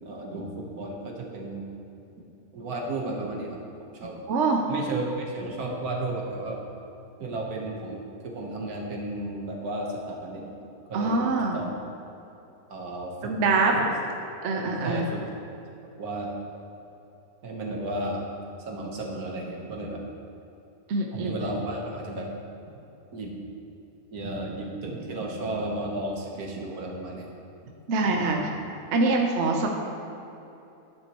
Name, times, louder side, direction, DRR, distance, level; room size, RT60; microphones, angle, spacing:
voice 1, 0.0-1.6 2.5-3.6 4.0-4.1 4.7-6.6 7.2-10.5 10.9-11.6 12.7-13.3 13.8-13.9 14.5-15.2 16.0-16.3 17.4-18.3 18.7-20.0 21.1-22.3 23.1-23.4 24.1-27.3 28.0-28.5, right 2 dB, 75° right, -1 dB, 1.7 m, -33 dB
voice 2, 4.3-4.6 10.9-11.6 13.2-13.8 14.4-15.1 20.9-21.3 27.9-28.4 28.9-29.7, right 3 dB, 55° right, 1 dB, 1.0 m, -24 dB
10.5 x 10.0 x 3.0 m, 2.9 s
omnidirectional pair, 1.6 m